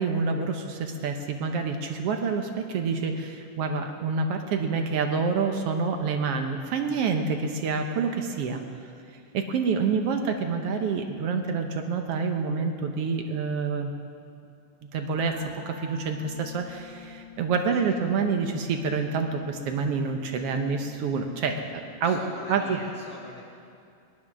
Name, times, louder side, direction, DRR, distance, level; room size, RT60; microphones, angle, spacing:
voice 1, 0.0-8.6 9.3-13.9 14.9-22.2 22.5-22.8, right 5 dB, 70° right, 5 dB, 1.5 m, -27 dB
sound 1, 15.1-21.8, left 5 dB, 15° right, 3.0 m, -48 dB
voice 2, 22.0-23.4, left 3 dB, 90° left, 0 dB, 0.9 m, -42 dB
20.0 x 11.0 x 6.1 m, 2.5 s
omnidirectional pair, 3.6 m